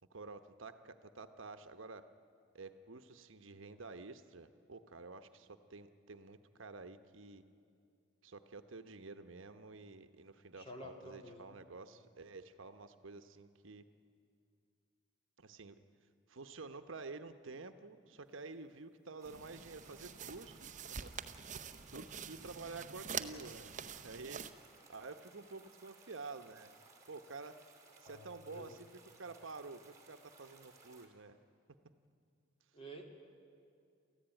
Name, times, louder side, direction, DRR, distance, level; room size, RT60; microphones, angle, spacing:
voice 1, 0.1-2.1 2.5-7.4 8.2-13.8 15.4-15.8 16.3-21.4 21.8-23.7 24.0-24.4 24.9-26.7 27.1-27.6 28.0-28.9 29.2-31.4, right 3 dB, 70° right, 9 dB, 1.0 m, -50 dB
voice 2, 10.5-11.6 28.1-28.8 32.7-33.0, equal, 25° left, 1 dB, 2.6 m, -51 dB
sound 1, 19.2-31.1, right 4 dB, 15° right, 2.7 m, -62 dB
sound 2, 19.2-24.5, right 7 dB, 35° right, 0.7 m, -46 dB
28.5 x 14.5 x 9.0 m, 2.4 s
head